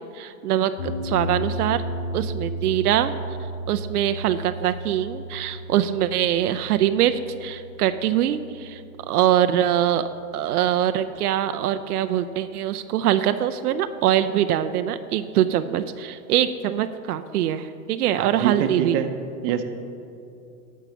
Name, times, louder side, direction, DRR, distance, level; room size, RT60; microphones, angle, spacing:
voice 1, 0.1-1.8 2.1-3.1 3.7-8.8 9.1-10.1 10.3-19.0, right 11 dB, 85° right, 10 dB, 0.6 m, -23 dB
sound 1, 0.8-11.0, equal, 50° left, 1.8 m, -34 dB
voice 2, 18.1-19.1 19.4-19.6, right 9 dB, 40° right, 7 dB, 0.9 m, -25 dB
13.0 x 5.6 x 6.0 m, 2.5 s
hypercardioid pair, 135°, 45 cm